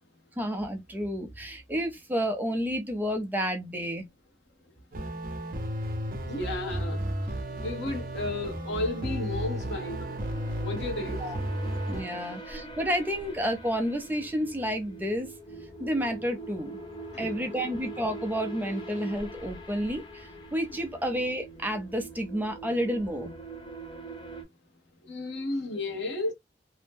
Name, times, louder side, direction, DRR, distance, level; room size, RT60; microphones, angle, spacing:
voice 1, 0.4-4.1 11.2-11.4 11.9-15.3 15.8-16.7 17.2-23.3, equal, 10° right, 0.5 m, -30 dB
sound 1, 4.9-12.0, equal, 50° right, 0.6 m, -33 dB
sound 2, 6.1-24.4, right 2 dB, 30° left, 0.7 m, -44 dB
voice 2, 6.2-7.1 7.6-10.1 10.6-11.2 17.1-17.4 25.1-26.3, left 2 dB, 75° left, 0.9 m, -33 dB
2.6 x 2.0 x 3.4 m
head